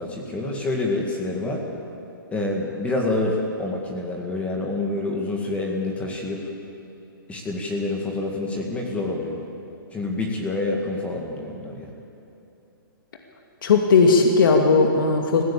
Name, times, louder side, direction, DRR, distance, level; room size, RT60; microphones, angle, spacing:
voice 1, 0.0-1.6 2.3-6.4 7.3-9.4 9.9-11.9, left 2 dB, 10° left, 0 dB, 2.0 m, -27 dB
voice 2, 13.6-15.4, left 4 dB, 65° left, 2 dB, 2.3 m, -17 dB
21.0 x 16.0 x 8.6 m, 2.8 s
hypercardioid pair, 145°, 12 cm